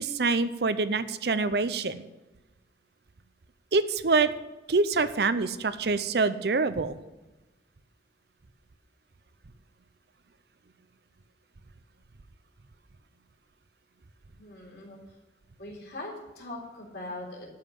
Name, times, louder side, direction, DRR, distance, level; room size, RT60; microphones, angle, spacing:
voice 1, 0.0-2.0 3.7-4.3 4.7-7.0, right 4 dB, 65° right, 13 dB, 0.6 m, -25 dB
voice 2, 14.4-15.0 15.6-17.5, left 2 dB, 65° left, -2 dB, 3.6 m, -41 dB
12.0 x 5.7 x 9.1 m, 1.1 s
head